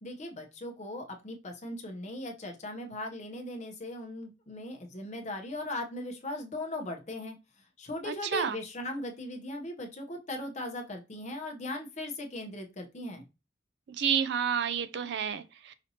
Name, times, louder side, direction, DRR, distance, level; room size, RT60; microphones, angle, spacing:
voice 1, 0.0-7.4 7.8-13.3, left 1 dB, 40° left, 0.7 m, -38 dB
voice 2, 8.0-8.6 14.0-15.7, right 7 dB, 60° right, 0.4 m, -30 dB
5.0 x 2.8 x 2.8 m
head